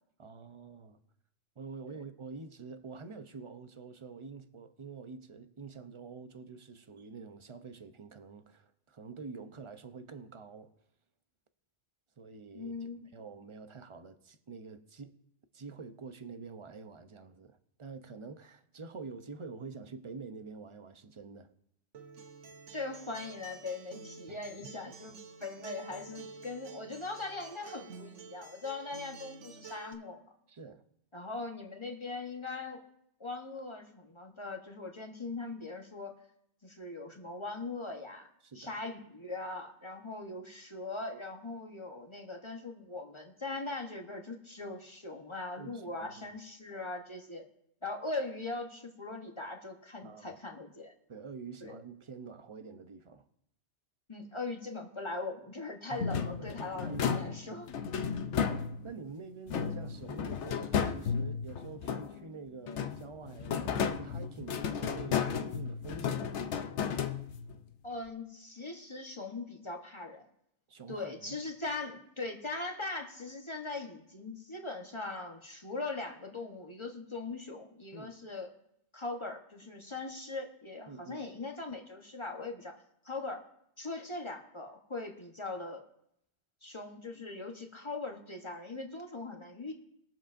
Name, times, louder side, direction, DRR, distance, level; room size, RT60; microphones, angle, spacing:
voice 1, 0.2-1.0 1.6-10.7 12.2-12.8 13.1-15.1 15.5-21.5 24.3-24.7 30.5-30.8 38.4-38.8 45.6-46.2 50.0-50.4 51.1-53.3 55.9-57.3 58.1-66.6 70.7-71.4 77.9-78.2 80.9-81.2, right 4 dB, 35° right, 0.6 m, -47 dB
voice 2, 12.5-13.1 22.7-30.2 31.1-32.8 33.2-36.1 36.6-38.3 38.5-47.4 47.8-50.9 51.6-51.8 54.1-57.7 67.8-70.2 70.9-78.5 78.9-82.7 83.0-83.4 83.8-85.8 86.6-89.7, left 3 dB, 25° left, 1.1 m, -40 dB
Acoustic guitar, 21.9-29.9, right 4 dB, 85° right, 1.3 m, -50 dB
sound 1, 56.0-59.0 59.5-62.3 62.7-67.6, left 7 dB, 80° left, 1.0 m, -34 dB
21.5 x 7.5 x 2.6 m
omnidirectional pair, 1.2 m